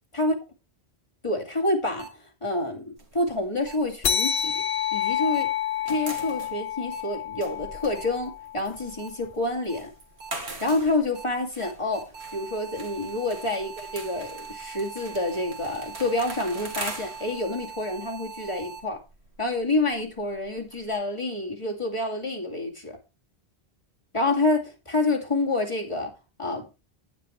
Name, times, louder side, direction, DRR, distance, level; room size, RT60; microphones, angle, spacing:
voice 1, 1.2-4.6 4.9-5.5 5.8-9.9 10.6-19.0 19.4-23.0 24.1-26.1 26.4-26.7, left 2 dB, 30° left, 2.4 m, -28 dB
sound 1, 2.0-2.1 3.7-3.8 5.3-5.4 6.9-7.0 7.9-8.0 9.0-9.1 9.7-9.8 10.2-10.3 10.7-10.8 11.1-11.2 11.6-18.8, right 5 dB, 55° right, 2.4 m, -41 dB
sound 2, 3.0-5.2 5.5-20.9, right 2 dB, 85° right, 2.1 m, -43 dB
sound 3, 4.0-9.0, left 9 dB, 70° left, 0.9 m, -29 dB
9.8 x 9.2 x 3.1 m
omnidirectional pair, 1.1 m